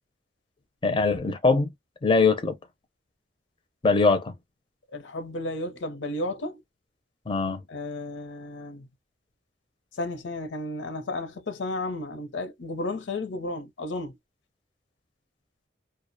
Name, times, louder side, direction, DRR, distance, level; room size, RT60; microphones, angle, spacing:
voice 1, 0.8-1.7 2.0-2.6 3.8-4.3 7.3-7.6, left 4 dB, 25° left, 0.4 m, -22 dB
voice 2, 4.9-6.6 7.7-8.9 9.9-14.2, left 2 dB, 90° left, 0.6 m, -33 dB
2.3 x 2.0 x 2.6 m
head